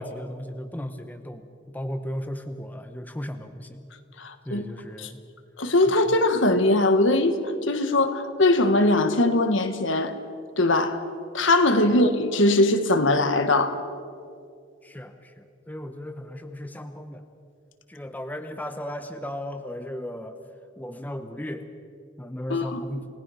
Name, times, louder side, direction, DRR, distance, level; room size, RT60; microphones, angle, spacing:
voice 1, 0.0-3.8 4.5-5.2 5.9-6.0 14.8-17.2 17.9-20.4 20.8-21.6 22.2-23.1, equal, 10° left, 7 dB, 0.9 m, -36 dB
voice 2, 4.2-4.6 5.0-5.1 5.6-7.3 7.6-10.1 10.6-11.0 11.3-13.8 22.5-22.8, left 2 dB, 70° left, 8 dB, 1.5 m, -21 dB
29.5 x 18.0 x 5.7 m, 2.4 s
head